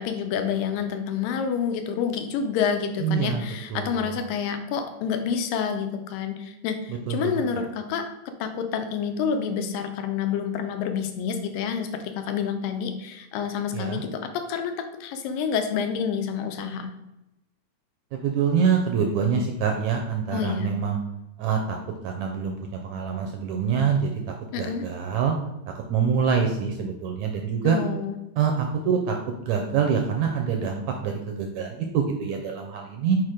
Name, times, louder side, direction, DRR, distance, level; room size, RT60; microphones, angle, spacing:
voice 1, 0.0-8.1 8.4-14.7 15.0-16.9 20.3-20.7 24.5-24.8 27.6-28.2, left 7 dB, 90° left, 6 dB, 2.4 m, -28 dB
voice 2, 3.0-3.4 3.7-4.1 7.1-7.6 13.7-14.0 18.1-21.0 21.4-21.8 22.0-24.2 24.6-25.3 25.9-27.8 28.4-29.2 29.4-33.2, right 6 dB, 75° right, 3 dB, 1.7 m, -25 dB
6.0 x 4.6 x 5.0 m, 0.91 s
omnidirectional pair, 3.9 m